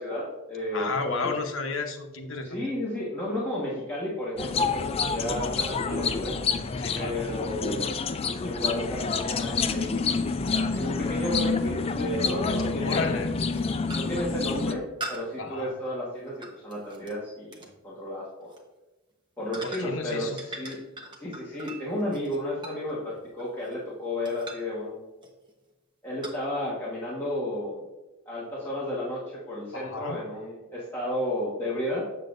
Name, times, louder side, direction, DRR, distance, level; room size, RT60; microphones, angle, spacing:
voice 1, 0.0-0.9 1.2-1.3 2.4-6.3 6.9-8.0 8.4-10.2 10.6-13.2 13.9-18.5 19.4-20.8 21.2-25.0 26.0-27.8 28.2-32.1, left 1 dB, 10° left, -8 dB, 1.4 m, -32 dB
voice 2, 0.7-2.6 6.8-7.2 12.8-13.3 15.4-15.7 19.6-20.4 29.7-30.2, left 4 dB, 70° left, 4 dB, 0.9 m, -32 dB
sound 1, 4.4-14.7, left 4 dB, 30° left, 0.3 m, -28 dB
sound 2, 9.0-9.1 11.5-11.6 12.8-13.0 13.4-13.6 13.9-14.3 15.0-17.2 17.5-17.8 18.4-18.6 19.5-20.1 20.4-23.9 24.3-24.8 25.2-25.5 26.2-26.4, right 2 dB, 20° right, 1.0 m, -42 dB
7.5 x 7.4 x 2.5 m, 1.1 s
head